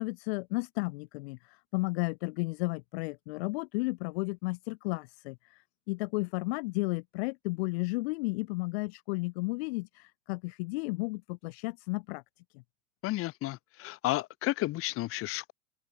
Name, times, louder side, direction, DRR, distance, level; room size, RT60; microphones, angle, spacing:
voice 1, 0.0-12.2 12.5-12.6, left 26 dB, 45° left, 3.2 m, -33 dB
voice 2, 13.0-15.5, left 18 dB, 30° left, 4.8 m, -32 dB
supercardioid pair, 155°, 43 cm